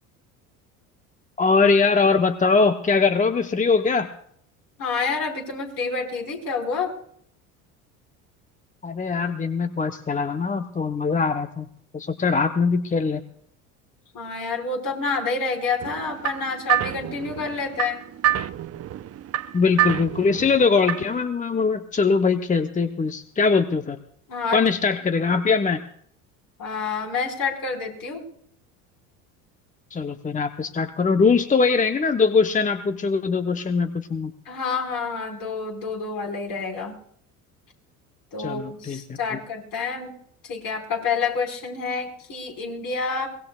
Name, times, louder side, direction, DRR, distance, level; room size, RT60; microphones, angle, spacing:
voice 1, 1.4-4.1 8.8-11.7 11.9-13.2 19.5-24.0 24.5-25.8 29.9-34.3 38.4-39.4, left 4 dB, 20° left, 8 dB, 1.0 m, -22 dB
voice 2, 4.8-6.9 14.1-18.0 24.3-24.6 26.6-28.3 34.5-37.0 38.3-40.2 40.4-43.3, left 5 dB, 50° left, 1 dB, 5.1 m, -28 dB
sound 1, 15.8-21.2, right 11 dB, 35° right, 0.8 m, -27 dB
23.5 x 19.5 x 2.4 m, 0.65 s
hypercardioid pair, 75°, 42 cm